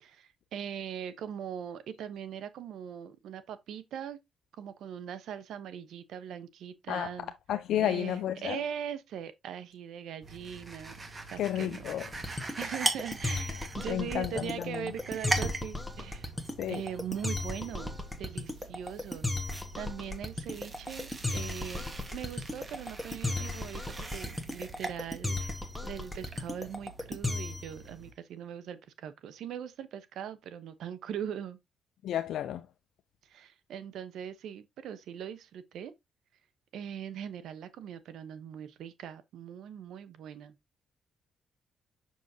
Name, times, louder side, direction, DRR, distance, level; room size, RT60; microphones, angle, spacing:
voice 1, 0.0-4.2 4.6-7.3 7.8-11.0 11.3-12.0 12.6-16.3 16.7-17.9 18.2-19.3 19.7-31.6 33.2-35.9 36.7-40.5, right 9 dB, 80° right, 0.9 m, -41 dB
voice 2, 7.5-8.6 11.4-12.1 13.9-14.9 16.6-16.8 32.0-32.7, left 11 dB, 80° left, 0.5 m, -32 dB
sound 1, 10.2-28.1, right 3 dB, 30° right, 1.5 m, -41 dB
sound 2, 12.1-27.8, left 2 dB, 10° left, 1.3 m, -35 dB
6.3 x 5.6 x 2.7 m
cardioid pair, 85°, 0 cm